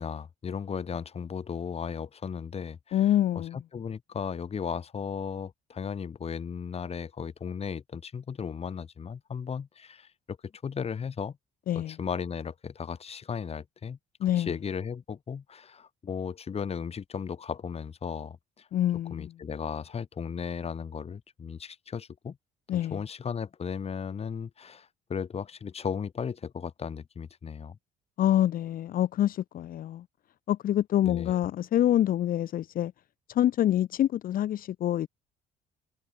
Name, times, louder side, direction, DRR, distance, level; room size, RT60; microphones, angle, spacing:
voice 1, 0.0-3.1 3.5-11.4 11.7-14.0 14.4-18.7 19.1-22.4 22.7-27.8 31.0-31.4, left 6 dB, 35° left, 4.1 m, -36 dB
voice 2, 2.9-3.6 11.7-11.9 14.2-14.5 18.7-19.3 22.7-23.0 28.2-30.0 30.5-32.9 33.3-35.1, left 12 dB, 60° left, 1.2 m, -26 dB
cardioid pair, 110°, 17 cm